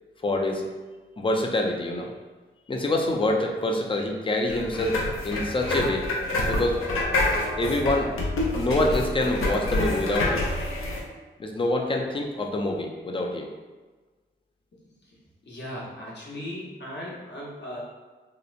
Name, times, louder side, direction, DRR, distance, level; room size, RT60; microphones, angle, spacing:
voice 1, 0.2-0.6 1.2-2.1 2.7-6.0 6.5-6.9 7.6-8.2 8.5-10.5 11.4-13.5, left 1 dB, 25° left, 1 dB, 0.5 m, -26 dB
sound 1, 4.5-11.0, left 2 dB, 85° left, 0.5 m, -27 dB
voice 2, 15.4-17.8, equal, 55° left, -5 dB, 0.9 m, -37 dB
2.9 x 2.0 x 2.5 m, 1.3 s
cardioid pair, 45°, 21 cm